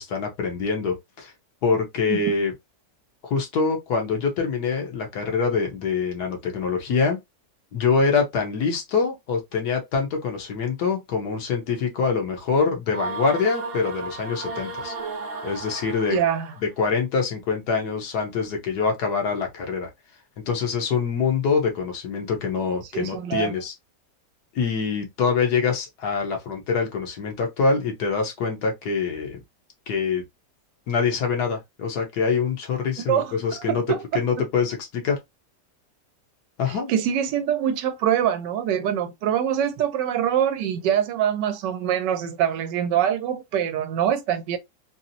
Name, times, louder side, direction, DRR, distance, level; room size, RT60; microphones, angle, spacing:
voice 1, 0.0-1.3 1.6-2.5 3.2-7.2 7.7-14.9 15.4-16.2 16.8-19.9 20.5-23.7 24.5-29.4 29.9-30.2 30.9-33.8 34.1-35.2 36.6-36.9, left 5 dB, 65° left, 1.4 m, -25 dB
sound 1, 12.9-16.7, right 3 dB, 60° right, 0.6 m, -34 dB
voice 2, 16.1-16.5 22.9-23.5 33.1-33.3 33.7-34.2 36.7-44.6, right 9 dB, 85° right, 1.3 m, -24 dB
4.1 x 2.0 x 2.6 m
omnidirectional pair, 1.9 m